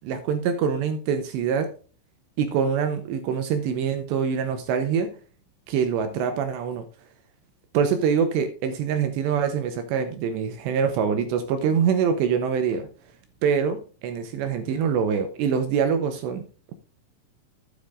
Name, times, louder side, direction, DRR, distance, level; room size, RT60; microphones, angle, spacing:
voice 1, 0.0-1.7 2.4-5.1 5.7-6.9 7.7-12.9 13.4-16.5, right 7 dB, 75° right, 8 dB, 2.6 m, -24 dB
12.0 x 9.6 x 2.5 m, 0.39 s
omnidirectional pair, 5.9 m